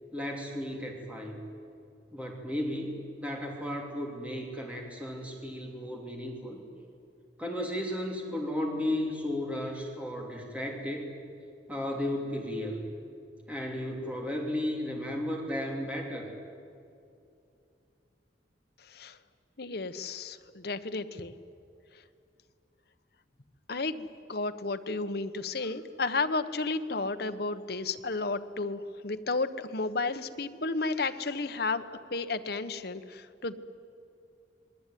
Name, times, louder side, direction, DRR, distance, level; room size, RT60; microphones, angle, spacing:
voice 1, 0.1-1.4 2.1-6.6 7.4-11.1 11.7-12.8 13.5-16.3 25.6-25.7, left 1 dB, 10° right, 0 dB, 3.0 m, -34 dB
voice 2, 19.6-21.3 23.7-33.5, left 3 dB, 60° left, 10 dB, 1.2 m, -32 dB
27.5 x 21.5 x 9.3 m, 2.6 s
head